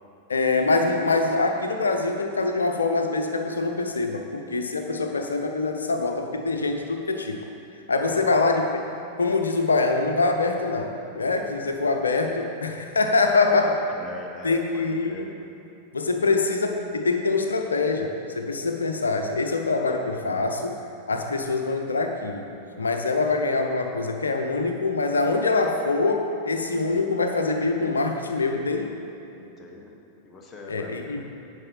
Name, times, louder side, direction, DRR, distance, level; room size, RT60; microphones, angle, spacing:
voice 1, 0.3-7.4 7.9-8.8 9.2-13.8 14.4-15.3 15.9-20.8 21.1-22.5 22.8-28.9 30.7-31.2, left 3 dB, 75° left, 4 dB, 0.8 m, -24 dB
voice 2, 8.0-8.4 13.9-15.3 29.3-29.9 30.2-31.2, left 4 dB, 20° left, -1 dB, 1.4 m, -42 dB
9.7 x 5.4 x 5.7 m, 2.7 s
figure-of-eight pair, 90°, 0 cm